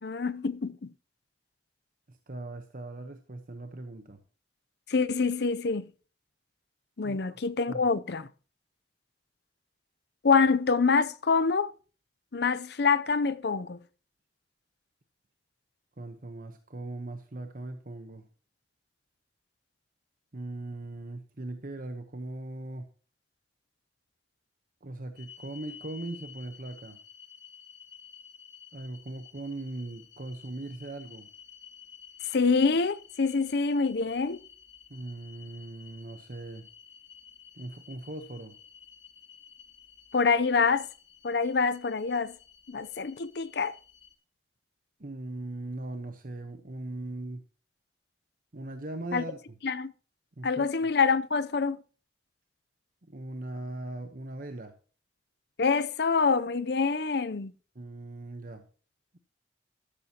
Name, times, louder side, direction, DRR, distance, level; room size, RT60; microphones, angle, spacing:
voice 1, 0.0-0.9 4.9-5.9 7.0-8.3 10.2-11.7 12.3-13.8 32.3-34.4 40.1-40.9 41.2-42.4 42.7-43.7 49.1-49.2 49.6-49.9 50.4-51.8 55.6-57.5, left 4 dB, 65° left, 0.6 m, -26 dB
voice 2, 2.1-4.2 7.0-7.4 7.7-7.8 16.0-18.3 20.3-22.9 24.8-27.0 28.7-31.3 34.9-36.7 37.5-38.5 45.0-47.4 48.5-49.6 50.4-50.7 53.0-54.7 57.7-58.6, right 2 dB, 50° right, 1.1 m, -39 dB
sound 1, 25.2-44.1, left 8 dB, 85° left, 2.1 m, -52 dB
13.5 x 11.5 x 2.9 m
head